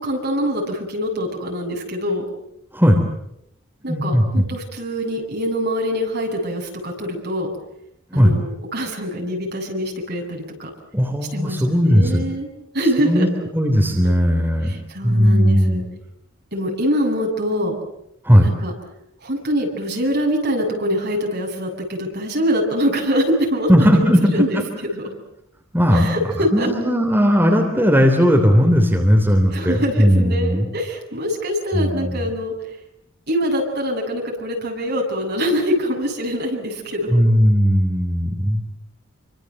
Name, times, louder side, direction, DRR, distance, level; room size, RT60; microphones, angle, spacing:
voice 1, 0.0-2.2 3.8-7.5 8.1-8.4 8.7-10.7 11.3-12.5 12.7-13.3 14.7-15.8 16.5-17.8 18.4-18.7 19.2-24.6 24.9-25.0 25.9-26.7 29.5-32.5 33.3-37.2, equal, 50° right, 1 dB, 7.9 m, -24 dB
voice 2, 2.7-3.0 3.9-4.5 8.1-8.3 10.9-12.2 13.0-13.3 13.5-14.7 15.0-15.8 18.2-18.5 23.7-24.6 25.7-30.7 31.7-32.3 37.1-38.6, equal, 10° right, 2 dB, 3.4 m, -17 dB
28.5 x 25.5 x 7.9 m, 0.78 s
head